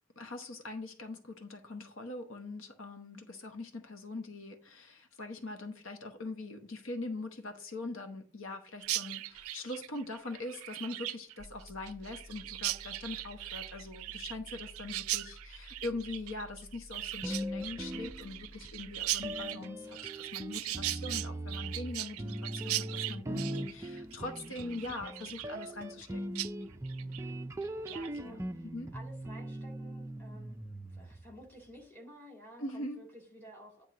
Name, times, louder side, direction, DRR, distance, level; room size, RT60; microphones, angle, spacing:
voice 1, 0.2-26.4 28.2-28.4 28.7-28.9 32.6-33.0, left 2 dB, 70° left, 1.0 m, -42 dB
Chirp tweet, 8.8-26.1 26.4-26.5 26.8-27.2 27.6-28.1, right 15 dB, 85° right, 0.4 m, -39 dB
sound 1, 11.4-19.4, equal, 30° left, 3.4 m, -53 dB
sound 2, 17.2-18.7 19.2-31.4, right 1 dB, 15° right, 0.4 m, -40 dB
voice 2, 27.0-27.5 27.9-28.7 28.9-33.8, equal, 10° left, 2.5 m, -53 dB
9.4 x 3.5 x 6.1 m
head